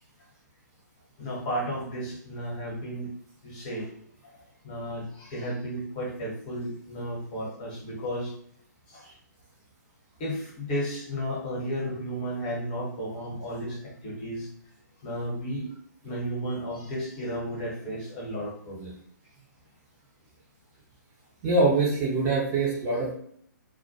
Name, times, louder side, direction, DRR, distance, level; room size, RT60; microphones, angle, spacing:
voice 1, 1.2-3.1 3.4-3.9 4.3-8.3 8.9-9.1 10.2-14.5 15.0-15.7 16.0-19.0, equal, 30° left, -3 dB, 1.0 m, -33 dB
voice 2, 21.4-23.1, right 3 dB, 25° right, -4 dB, 0.6 m, -24 dB
2.2 x 2.1 x 2.7 m, 0.64 s
figure-of-eight pair, 130°, 10 cm